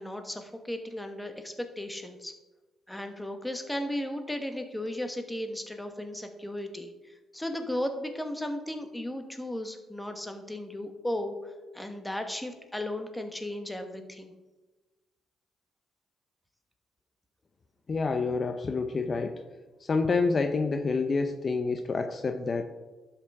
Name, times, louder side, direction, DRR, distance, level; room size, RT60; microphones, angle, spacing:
voice 1, 0.0-2.3 2.9-6.9 7.3-11.3 11.7-14.3, left 1 dB, 5° left, 6 dB, 1.3 m, -35 dB
voice 2, 17.9-19.4 19.8-22.6, left 4 dB, 40° left, 8 dB, 0.6 m, -28 dB
11.5 x 6.0 x 4.8 m, 1.2 s
cardioid pair, 90°, 0 cm